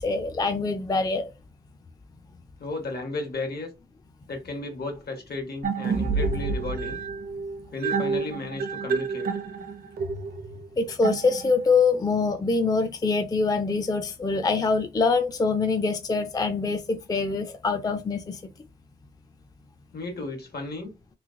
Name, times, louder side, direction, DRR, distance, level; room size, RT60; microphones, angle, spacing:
voice 1, 0.0-1.3 10.8-18.5, left 4 dB, 20° left, 0.4 m, -24 dB
voice 2, 2.6-3.7 4.3-7.0 7.7-9.3 19.9-20.9, left 2 dB, 70° left, 1.2 m, -34 dB
sound 1, 5.6-11.8, right 4 dB, 65° right, 0.6 m, -29 dB
3.1 x 3.0 x 2.5 m
wide cardioid pair, 160°, 17 cm